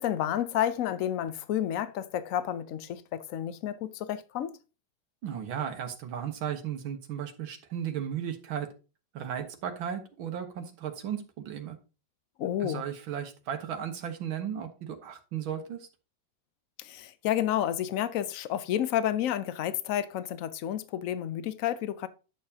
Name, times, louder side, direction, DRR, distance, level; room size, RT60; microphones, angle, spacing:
voice 1, 0.0-4.6 12.4-12.8 16.8-22.1, left 11 dB, 70° left, 0.7 m, -30 dB
voice 2, 5.2-8.7 9.1-11.8 12.6-15.9, right 9 dB, 85° right, 2.0 m, -35 dB
10.5 x 6.8 x 2.8 m
omnidirectional pair, 2.1 m